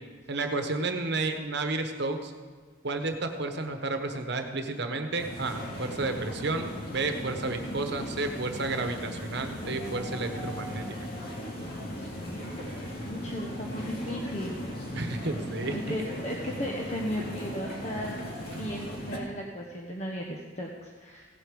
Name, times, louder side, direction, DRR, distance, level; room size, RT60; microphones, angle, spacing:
voice 1, 0.3-2.3 2.8-11.0 14.9-16.0 18.5-18.7, right 3 dB, 60° right, 6 dB, 1.1 m, -31 dB
sound 1, 5.2-19.2, equal, 50° left, 2.3 m, -37 dB
voice 2, 12.7-14.6 15.7-21.3, equal, 35° left, 0 dB, 0.9 m, -36 dB
16.5 x 8.0 x 5.2 m, 1.5 s
head